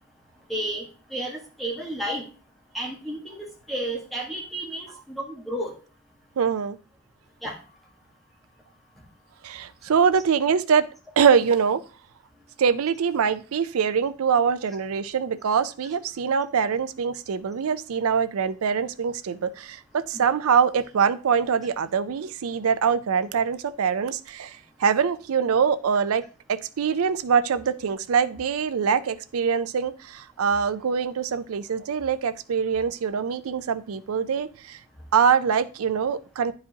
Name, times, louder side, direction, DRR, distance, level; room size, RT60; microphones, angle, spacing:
voice 1, 0.5-2.2 2.7-5.7 7.4-7.6 20.1-20.3, right 1 dB, ahead, -2 dB, 1.3 m, -32 dB
voice 2, 6.4-6.8 9.4-10.8 11.2-11.8 12.6-34.8 35.1-36.5, right 6 dB, 85° right, 13 dB, 0.4 m, -24 dB
9.6 x 4.8 x 2.8 m, 0.37 s
head